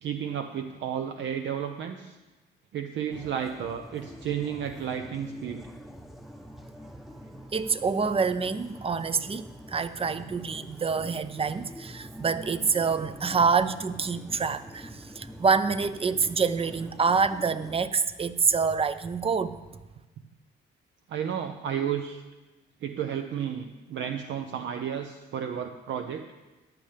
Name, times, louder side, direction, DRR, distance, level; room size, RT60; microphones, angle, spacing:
voice 1, 0.0-2.2 2.7-5.7 21.1-22.2 22.8-26.3, right 8 dB, 70° right, 6 dB, 0.7 m, -32 dB
sound 1, 3.1-17.9, equal, ahead, 0.8 m, -45 dB
voice 2, 7.5-19.6, right 5 dB, 30° right, 13 dB, 0.6 m, -26 dB
14.5 x 10.5 x 3.4 m, 1.1 s
cardioid pair, 90°, 20 cm